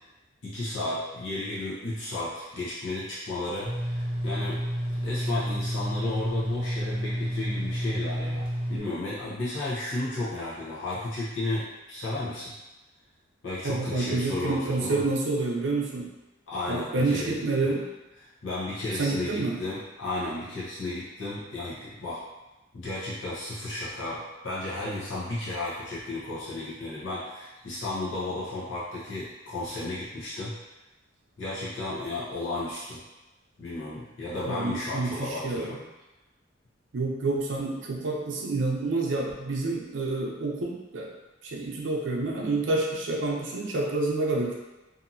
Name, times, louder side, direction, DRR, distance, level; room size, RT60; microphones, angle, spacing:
voice 1, 0.4-4.6 5.0-12.5 13.4-15.0 16.5-17.7 18.4-22.2 22.7-30.5 31.4-33.0 33.6-35.8, left 2 dB, 85° left, -9 dB, 0.8 m, -33 dB
sound 1, 3.6-8.8, equal, 25° right, 0.6 m, -30 dB
voice 2, 13.6-16.1 16.7-17.9 19.0-19.6 34.5-35.7 36.9-41.1 41.4-44.6, right 3 dB, 70° right, -1 dB, 0.6 m, -28 dB
2.8 x 2.6 x 2.6 m, 1.1 s
head